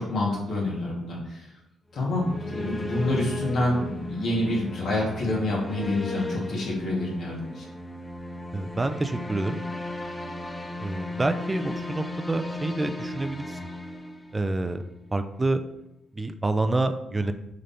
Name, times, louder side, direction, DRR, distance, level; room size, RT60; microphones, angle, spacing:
voice 1, 0.0-1.5 1.9-7.6, left 1 dB, 65° left, -5 dB, 2.6 m, -27 dB
sound 1, 1.9-14.8, left 1 dB, 15° left, 0.7 m, -36 dB
voice 2, 8.5-9.6 10.8-13.7 14.3-14.8 15.1-15.6 16.1-17.3, right 2 dB, 20° right, 8 dB, 0.5 m, -27 dB
6.6 x 3.9 x 4.4 m, 0.85 s
cardioid pair, 120°, 0 cm